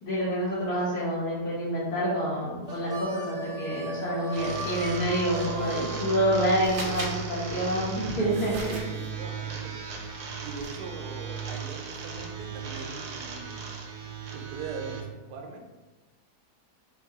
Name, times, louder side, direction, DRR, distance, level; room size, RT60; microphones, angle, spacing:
voice 1, 0.0-8.7, equal, 75° left, -10 dB, 1.8 m, -28 dB
Harmonica, 2.7-6.9, right 2 dB, 25° right, 1.0 m, -38 dB
sound 1, 4.3-15.0, right 6 dB, 70° right, 1.2 m, -36 dB
sound 2, 6.6-7.2 8.3-9.1 10.6-10.7 11.1-11.4, right 1 dB, 50° right, 1.2 m, -38 dB
voice 2, 8.2-9.8 10.4-13.6 14.3-15.8, right 4 dB, 85° right, 1 dB, 1.2 m, -41 dB
4.3 x 2.1 x 4.6 m, 1.2 s
omnidirectional pair, 1.8 m